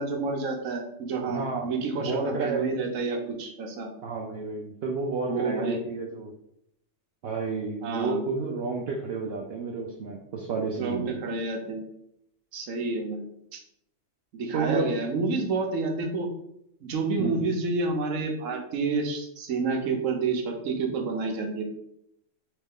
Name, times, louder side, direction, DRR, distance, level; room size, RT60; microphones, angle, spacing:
voice 1, 0.0-3.9 5.3-5.8 7.8-8.2 10.8-11.8 12.5-13.6 14.3-16.3 16.8-21.6, right 3 dB, 80° right, 3 dB, 1.1 m, -29 dB
voice 2, 1.3-1.7 2.0-2.6 4.0-6.3 7.2-11.2 14.5-14.9 17.2-17.5, right 4 dB, 65° right, 0 dB, 0.7 m, -31 dB
3.4 x 3.1 x 3.5 m, 0.76 s
omnidirectional pair, 1.4 m